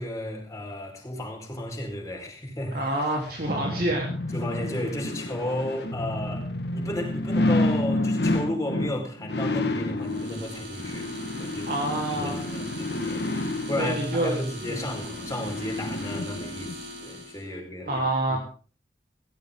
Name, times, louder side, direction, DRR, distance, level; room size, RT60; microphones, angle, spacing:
voice 1, 0.0-2.8 4.3-6.5 6.7-11.1 11.4-11.7 12.1-13.2 13.7-18.4, left 1 dB, 20° left, 1 dB, 5.0 m, -33 dB
voice 2, 2.7-4.3 11.7-12.4 13.8-14.4 14.7-15.0 17.9-18.4, right 1 dB, 60° right, -1 dB, 3.6 m, -27 dB
sound 1, 2.9-16.8 17.2-17.3, left 1 dB, 65° left, 1.9 m, -30 dB
sound 2, 10.0-17.5, left 1 dB, 85° right, 5.8 m, -41 dB
17.0 x 17.0 x 3.9 m, 0.40 s
head